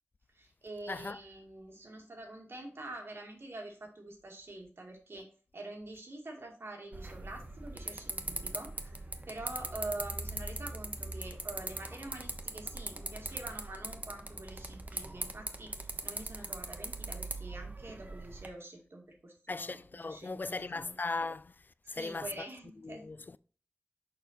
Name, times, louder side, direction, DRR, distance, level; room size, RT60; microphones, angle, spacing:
voice 1, 0.3-5.3 5.5-21.0 21.8-23.1, right 2 dB, 65° right, 2.1 m, -46 dB
voice 2, 0.9-1.2 19.5-21.5 21.9-22.3 22.8-23.4, left 3 dB, 45° left, 0.4 m, -38 dB
sound 1, 6.9-18.5, right 2 dB, 35° right, 0.9 m, -41 dB
6.7 x 5.2 x 4.3 m
wide cardioid pair, 70°, 4 cm